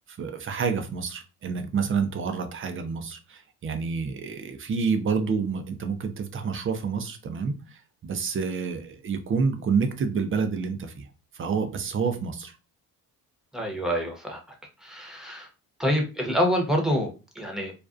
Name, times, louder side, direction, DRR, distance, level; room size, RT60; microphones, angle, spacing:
voice 1, 0.1-11.1 11.3-12.6, right 5 dB, 35° right, 0.4 m, -28 dB
voice 2, 13.5-14.4 14.8-15.5 15.8-17.7, equal, ahead, 0.8 m, -26 dB
2.4 x 2.1 x 2.4 m
cardioid pair, 100°, 37 cm